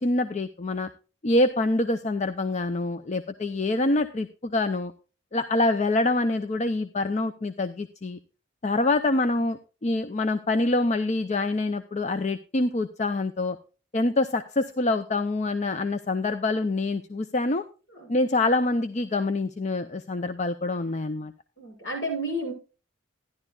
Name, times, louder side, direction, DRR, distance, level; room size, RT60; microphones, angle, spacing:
voice 1, 0.0-0.9 1.2-4.9 5.3-8.2 8.6-13.6 13.9-17.6 18.1-21.3, left 2 dB, 35° left, 9 dB, 0.5 m, -25 dB
voice 2, 21.6-22.5, right 1 dB, 60° left, -1 dB, 7.2 m, -31 dB
14.0 x 11.0 x 2.4 m, 0.33 s
head